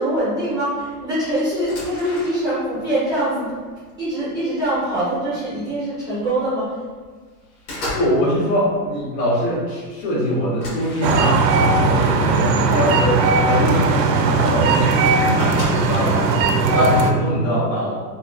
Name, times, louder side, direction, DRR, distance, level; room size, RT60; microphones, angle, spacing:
voice 1, 0.0-3.5 4.0-6.8, right 1 dB, 10° right, -12 dB, 0.3 m, -23 dB
sound 1, 1.5-2.7 3.1-4.3 4.8-5.0 5.4-6.3 6.7-7.1 7.4-8.3 8.5-9.0 9.5-9.6 9.9-10.0 10.6-11.7 12.5-12.6 13.1-13.2 14.3-14.4 14.5-14.6 14.8-16.1, left 1 dB, 40° left, 1.2 m, -34 dB
voice 2, 7.9-18.0, equal, 90° left, -6 dB, 1.5 m, -22 dB
sound 2, 11.0-17.1, right 3 dB, 85° right, 0.6 m, -18 dB
3.7 x 2.2 x 2.5 m, 1.5 s
supercardioid pair, 150°, 48 cm